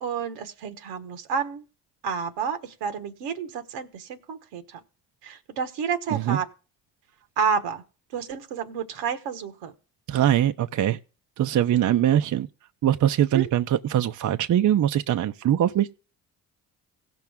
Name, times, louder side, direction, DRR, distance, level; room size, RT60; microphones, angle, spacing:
voice 1, 0.0-1.6 2.0-4.8 5.2-6.5 7.4-7.8 8.1-9.7 13.3-13.5, right 6 dB, 85° right, 1.3 m, -30 dB
voice 2, 10.1-11.0 11.4-12.5 12.8-15.9, right 11 dB, 45° right, 0.6 m, -22 dB
17.0 x 6.1 x 3.5 m
supercardioid pair, 55°, 41 cm